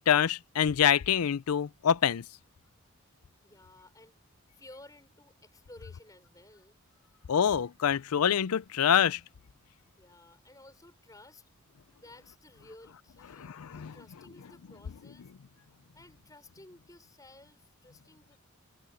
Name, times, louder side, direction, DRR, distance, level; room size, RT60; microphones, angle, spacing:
voice 1, 0.0-2.2 7.3-9.2 13.4-13.9, left 8 dB, 90° left, 0.5 m, -26 dB
voice 2, 3.0-4.2 4.5-6.8 10.0-11.5 12.0-15.3 15.9-18.4, left 2 dB, 15° left, 4.7 m, -55 dB
head